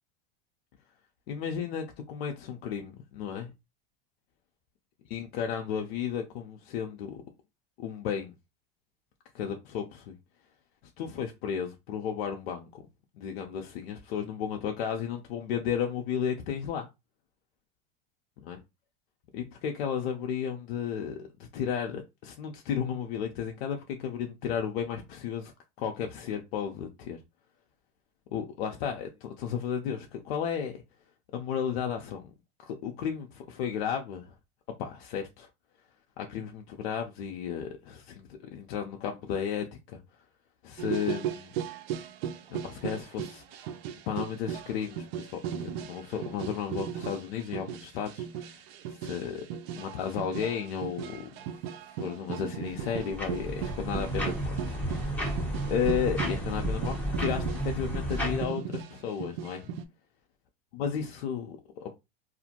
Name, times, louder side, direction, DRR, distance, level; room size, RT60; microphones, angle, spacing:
voice 1, 1.3-3.5 5.1-7.2 7.8-8.3 9.3-10.1 11.0-12.8 13.2-16.9 18.5-18.6 19.3-21.3 21.5-25.5 25.8-27.2 28.3-29.1 29.4-30.7 31.3-32.3 32.7-34.3 34.8-35.5 36.2-40.0 40.6-41.5 42.5-43.7 44.1-48.6 48.9-49.4 49.8-51.6 51.9-55.2 55.7-59.7 60.8-61.9, left 8 dB, 80° left, 0.6 m, -33 dB
sound 1, 40.8-59.8, right 9 dB, 70° right, 0.5 m, -37 dB
sound 2, 52.7-58.5, right 1 dB, 5° left, 0.9 m, -32 dB
2.5 x 2.1 x 2.8 m
supercardioid pair, 115°, 30 cm